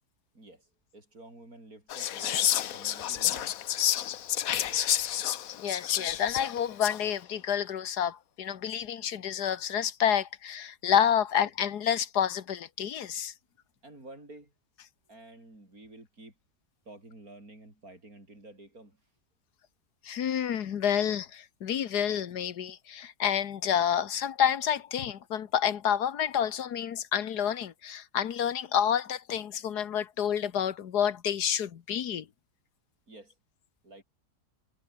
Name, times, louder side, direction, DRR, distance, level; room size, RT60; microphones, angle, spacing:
voice 1, 0.3-3.5 4.1-4.3 13.8-14.5 15.1-16.3 16.9-19.0 33.1-33.3 33.8-34.0, right 2 dB, 60° right, 7.5 m, -50 dB
Whispering, 1.9-7.1, left 11 dB, 65° left, 1.2 m, -29 dB
voice 2, 5.6-13.3 20.0-32.3, left 9 dB, 80° left, 1.7 m, -29 dB
omnidirectional pair, 1.7 m